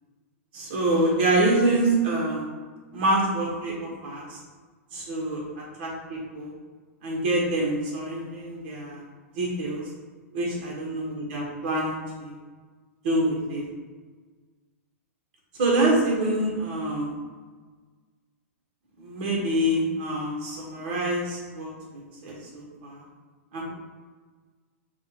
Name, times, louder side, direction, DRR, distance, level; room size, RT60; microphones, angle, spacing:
voice 1, 0.5-2.4 2.9-4.4 4.9-5.4 5.8-6.5 7.0-9.0 9.3-9.8 10.3-12.3 13.0-13.6 15.6-17.1 19.0-21.7 22.2-23.0 23.5-23.7, right 1 dB, 40° right, -3 dB, 1.2 m, -26 dB
5.6 x 2.4 x 2.9 m, 1.4 s
hypercardioid pair, 165°, 8 cm